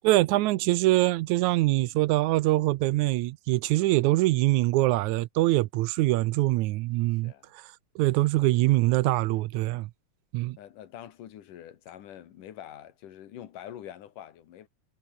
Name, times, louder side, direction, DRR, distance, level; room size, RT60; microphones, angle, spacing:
voice 1, 0.0-7.3 8.0-9.9 10.3-10.6, right 18 dB, 80° right, 1.8 m, -24 dB
voice 2, 7.1-7.5 9.2-9.4 10.6-14.7, left 11 dB, 70° left, 3.2 m, -45 dB
omnidirectional pair, 3.8 m